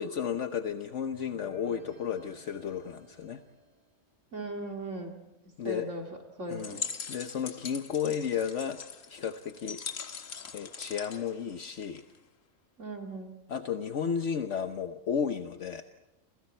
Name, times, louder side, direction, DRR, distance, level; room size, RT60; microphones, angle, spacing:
voice 1, 0.0-3.4 5.6-5.9 6.5-6.8 7.1-8.8 9.1-9.8 10.5-12.0 13.5-15.8, left 7 dB, 70° left, 8 dB, 1.3 m, -33 dB
sound 1, 1.1-3.9, right 1 dB, 25° right, 5.1 m, -55 dB
voice 2, 4.3-5.2 5.6-6.1 6.4-6.9 12.8-13.4, right 1 dB, 70° right, 2 dB, 2.7 m, -38 dB
sound 2, 6.5-12.2, left 5 dB, 90° left, 1.8 m, -41 dB
29.0 x 29.0 x 4.4 m, 0.97 s
omnidirectional pair, 1.3 m